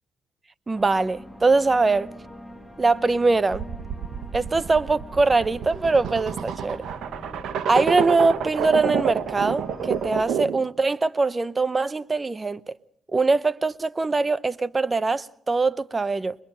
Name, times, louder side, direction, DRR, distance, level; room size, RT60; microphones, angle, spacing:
sound 1, 0.7-10.3, left 1 dB, ahead, 2.2 m, -43 dB
voice 1, 0.7-2.1 2.8-3.6 4.3-6.8 7.7-12.6 13.1-16.4, right 3 dB, 25° right, 0.7 m, -22 dB
sound 2, 3.5-10.7, right 8 dB, 75° right, 1.2 m, -29 dB
22.5 x 22.0 x 5.6 m
cardioid pair, 90°, 0 cm